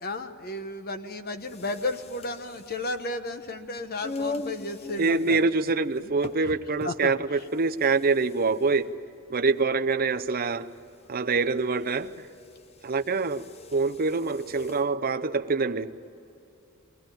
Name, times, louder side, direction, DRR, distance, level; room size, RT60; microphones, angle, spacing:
voice 1, 0.0-5.4 6.0-6.1 6.4-6.5 6.8-7.1 8.7-8.8, left 2 dB, 45° left, 8 dB, 1.1 m, -33 dB
sound 1, 1.4-14.9, left 2 dB, 30° left, 0.7 m, -42 dB
voice 2, 5.0-8.9 9.3-10.7 11.1-12.3 12.8-13.4 13.7-15.9, right 4 dB, 45° right, 8 dB, 0.7 m, -25 dB
23.0 x 17.0 x 9.1 m, 2.8 s
head